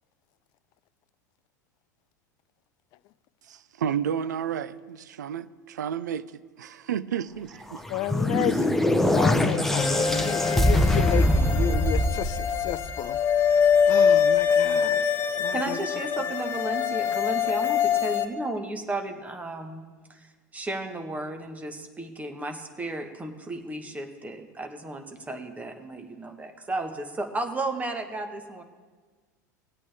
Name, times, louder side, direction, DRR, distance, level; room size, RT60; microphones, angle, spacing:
voice 1, 3.5-7.8, right 8 dB, 70° right, 0.5 m, -31 dB
sound 1, 7.7-13.1, left 1 dB, 5° left, 1.0 m, -23 dB
voice 2, 7.9-8.7 9.1-13.2 13.9-15.0 15.4-15.5, left 13 dB, 45° left, 0.4 m, -31 dB
sound 2, 9.8-18.3, left 7 dB, 25° left, 1.2 m, -24 dB
voice 3, 15.5-19.8 20.1-28.6, right 2 dB, 15° right, 1.5 m, -34 dB
19.5 x 8.3 x 3.6 m
figure-of-eight pair, 80°, 10 cm